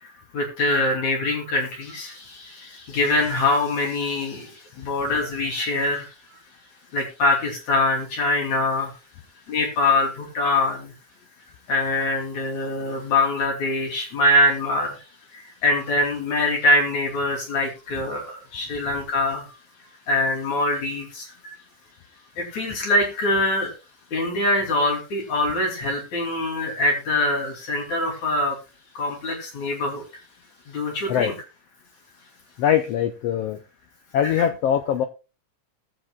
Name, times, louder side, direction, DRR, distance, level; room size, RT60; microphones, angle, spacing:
voice 1, 0.0-6.1 6.9-9.0 9.5-10.9 11.7-15.0 15.3-19.5 20.1-21.5 22.4-23.7 24.1-28.6 28.9-30.0 30.7-31.3 34.2-34.5, left 2 dB, 65° left, 0 dB, 4.3 m, -24 dB
voice 2, 32.6-33.6 34.1-35.1, left 9 dB, 80° left, 8 dB, 1.4 m, -22 dB
20.0 x 7.7 x 2.3 m, 0.29 s
omnidirectional pair, 3.6 m